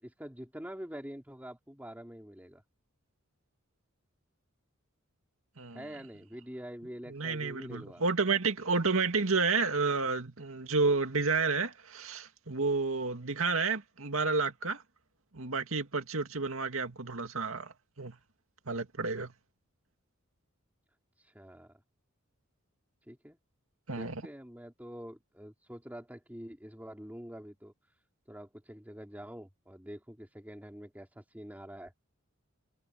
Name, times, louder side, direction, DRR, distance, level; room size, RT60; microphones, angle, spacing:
voice 1, 0.0-2.6 5.7-8.0 21.2-21.8 23.1-23.4 23.9-28.0 28.3-31.9, equal, 10° right, 3.7 m, -46 dB
voice 2, 7.1-14.8 15.3-18.2 18.7-19.3 23.9-24.2, right 4 dB, 80° right, 2.3 m, -30 dB
head